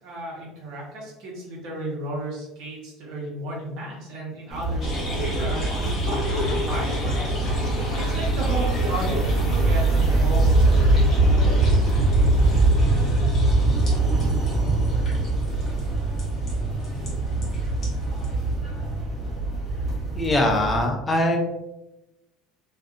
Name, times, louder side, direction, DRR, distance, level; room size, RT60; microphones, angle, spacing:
voice 1, 0.0-7.3 8.1-11.4, right 1 dB, 60° right, -2 dB, 1.0 m, -34 dB
sound 1, 4.5-20.8, right 2 dB, 5° right, 1.2 m, -22 dB
sound 2, 4.8-18.5, left 1 dB, 30° left, 1.1 m, -32 dB
voice 2, 20.1-21.4, left 1 dB, 15° left, 1 dB, 0.5 m, -22 dB
2.6 x 2.4 x 2.4 m, 0.93 s
cardioid pair, 145°, 0 cm